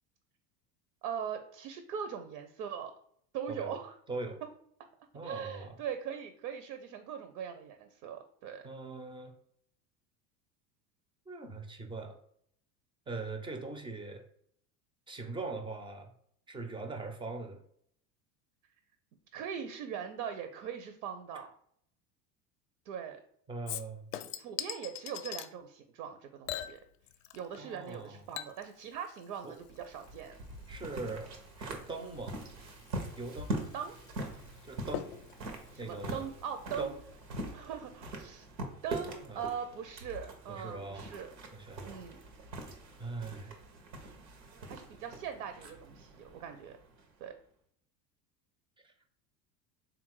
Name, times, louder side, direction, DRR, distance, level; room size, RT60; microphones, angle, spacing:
voice 1, 1.0-2.9 3.3-4.0 5.2-8.7 19.3-21.5 22.9-23.2 24.4-26.8 27.3-30.4 33.7-34.0 35.7-36.9 37.5-38.5 38.8-41.3 41.8-42.2 43.4-43.5 44.7-46.8 47.2-47.3, right 8 dB, 65° right, 7 dB, 0.6 m, -41 dB
voice 2, 4.1-4.4 5.1-5.8 8.6-9.3 11.3-12.2 13.1-14.2 15.1-16.1 16.5-17.6 23.5-24.1 27.6-28.2 29.4-29.6 30.7-31.3 31.6-32.4 33.2-33.5 34.6-35.1 35.8-36.2 36.8-36.9 39.3-39.4 40.5-41.1 41.5-42.0 43.0-43.6, right 3 dB, 10° right, 5 dB, 0.4 m, -41 dB
Chink clink / Liquid, 23.7-25.5 26.5-27.6 27.9-36.9 37.2-37.3, left 11 dB, 60° left, 0.5 m, -45 dB
sound 1, 29.6-47.3, right 1 dB, 90° right, 1.0 m, -43 dB
3.5 x 2.5 x 4.5 m, 0.66 s
hypercardioid pair, 85°, 49 cm